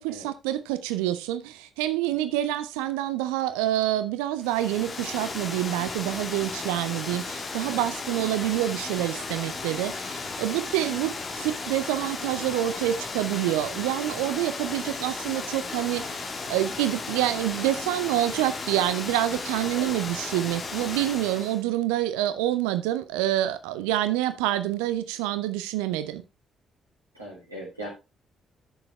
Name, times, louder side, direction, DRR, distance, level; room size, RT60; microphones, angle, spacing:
voice 1, 0.0-16.2 16.5-26.2, right 13 dB, 70° right, 0.5 m, -27 dB
Water, 4.4-21.6, left 4 dB, 40° left, 2.0 m, -35 dB
voice 2, 27.1-27.9, right 1 dB, 85° right, 3.4 m, -39 dB
12.0 x 6.8 x 3.3 m
figure-of-eight pair, 40°, 0 cm